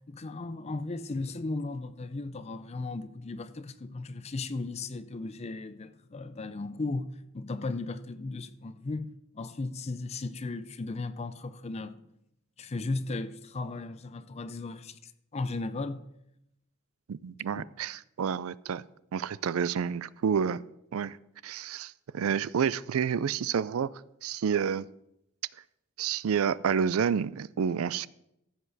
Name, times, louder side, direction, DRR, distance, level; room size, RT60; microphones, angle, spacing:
voice 1, 0.1-12.0 12.6-16.1 17.6-17.7, left 3 dB, 30° left, 0.5 m, -36 dB
voice 2, 17.1-18.8 19.1-20.6 20.9-21.2 21.4-23.9 24.2-24.9 26.0-28.1, right 7 dB, 85° right, 0.4 m, -29 dB
14.5 x 7.9 x 4.1 m
head